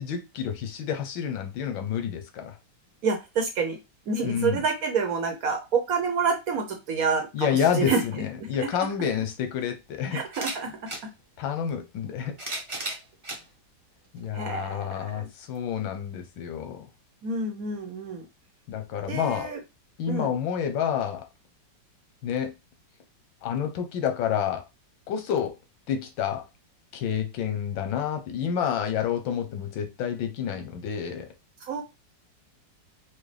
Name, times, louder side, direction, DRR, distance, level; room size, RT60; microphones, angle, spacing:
voice 1, 0.0-2.6 4.2-4.6 7.3-10.2 11.4-12.4 14.1-16.9 18.7-19.5 20.0-21.3 22.2-22.5 23.4-24.6 25.1-25.6 25.9-26.4 26.9-31.3, left 8 dB, 90° left, 1.5 m, -29 dB
voice 2, 3.0-3.8 4.1-8.3 8.6-8.7 10.1-10.9 14.3-15.3 17.2-18.3 19.1-19.6 20.1-20.3 31.6-31.8, right 5 dB, 60° right, 1.1 m, -28 dB
sound 1, 10.2-11.0 12.0-13.4 14.2-14.3 15.5-15.6, right 2 dB, 30° right, 0.6 m, -35 dB
4.8 x 2.2 x 3.3 m
omnidirectional pair, 2.0 m